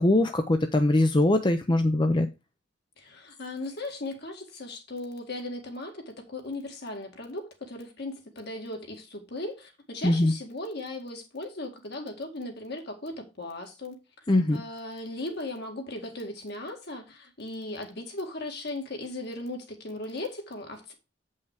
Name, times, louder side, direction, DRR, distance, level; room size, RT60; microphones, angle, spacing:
voice 1, 0.0-2.3 10.0-10.3 14.3-14.6, left 1 dB, 25° left, 0.6 m, -22 dB
voice 2, 3.0-14.0 14.5-20.9, left 2 dB, 60° left, 2.1 m, -37 dB
8.1 x 5.6 x 4.9 m
head